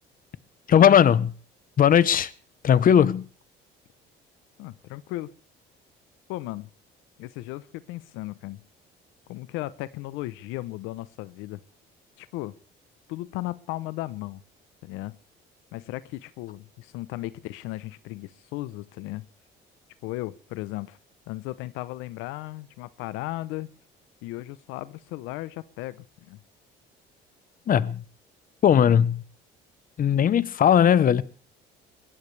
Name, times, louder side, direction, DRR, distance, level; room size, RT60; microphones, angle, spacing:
voice 1, 0.7-1.3 1.8-2.3 2.6-3.3 27.7-28.0 28.6-29.2 30.0-31.2, left 9 dB, 45° left, 0.9 m, -18 dB
voice 2, 4.6-5.3 6.3-6.7 7.2-8.6 9.3-11.6 12.2-12.6 13.1-14.4 14.8-15.2 15.7-19.2 20.0-21.0 21.3-23.7 24.2-26.4, left 17 dB, 85° left, 0.7 m, -36 dB
21.5 x 15.5 x 3.3 m
cardioid pair, 95°, 20 cm